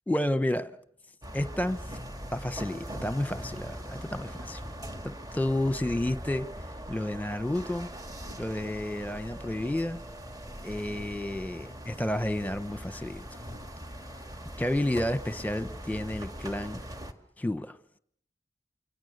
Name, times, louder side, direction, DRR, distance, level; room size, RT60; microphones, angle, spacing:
voice 1, 0.1-0.8 1.3-1.8 2.3-4.6 5.0-6.5 6.9-7.9 8.4-10.0 10.6-13.4 14.6-16.8 17.4-17.8, left 1 dB, 10° left, 1.0 m, -31 dB
sound 1, 1.2-17.1, equal, 20° right, 1.9 m, -41 dB
sound 2, 2.0-14.5, equal, 65° right, 6.8 m, -56 dB
sound 3, 7.6-16.4, equal, 40° right, 7.9 m, -57 dB
29.0 x 25.0 x 6.7 m
head